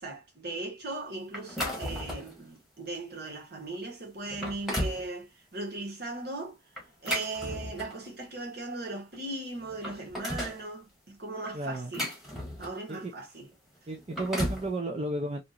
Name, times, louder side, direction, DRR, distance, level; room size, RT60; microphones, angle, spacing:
voice 1, 0.0-6.6 7.0-12.1 12.6-13.5, right 2 dB, 55° right, 1.5 m, -38 dB
sound 1, 1.3-2.4 2.9-3.1 3.7-3.8 4.2-5.1 6.8-8.1 9.1-9.2 9.6-10.6 11.5-12.9 13.9-14.7, equal, ahead, 1.1 m, -34 dB
voice 2, 11.5-11.9 12.9-13.1 13.9-15.5, right 1 dB, 35° right, 0.4 m, -33 dB
2.9 x 2.8 x 2.3 m
head